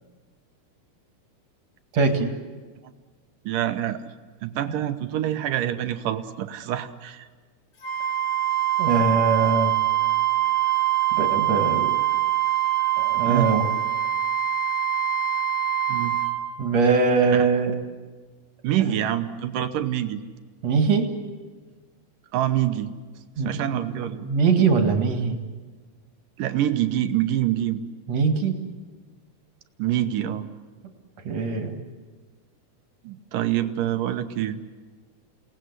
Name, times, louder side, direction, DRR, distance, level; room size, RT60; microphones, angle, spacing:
voice 1, 1.9-2.3 8.8-9.7 11.2-12.0 13.0-13.7 16.6-17.7 20.6-21.0 23.4-25.4 28.1-28.6 31.2-31.8, right 4 dB, 50° right, 5 dB, 2.7 m, -22 dB
voice 2, 3.5-4.0 4.4-7.3 13.3-13.5 15.9-16.2 17.3-17.5 18.6-20.2 22.3-22.9 23.5-24.3 26.4-27.8 29.8-30.5 33.0-34.6, right 12 dB, 70° right, 8 dB, 2.4 m, -26 dB
Wind instrument woodwind instrument, 7.8-16.4, right 12 dB, 75° left, 5.0 m, -23 dB
28.5 x 18.5 x 8.1 m, 1.4 s
omnidirectional pair, 4.5 m